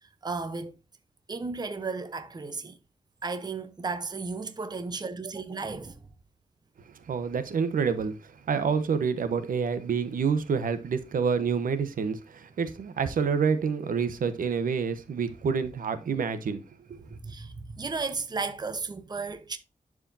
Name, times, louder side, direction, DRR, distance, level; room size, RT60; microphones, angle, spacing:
voice 1, 0.0-0.8 1.3-2.8 3.2-6.0 17.1-19.6, right 4 dB, 30° right, 0.8 m, -34 dB
voice 2, 7.1-16.6 16.9-17.1, right 6 dB, 85° right, 1.0 m, -28 dB
11.5 x 4.8 x 2.7 m
wide cardioid pair, 125°, 14 cm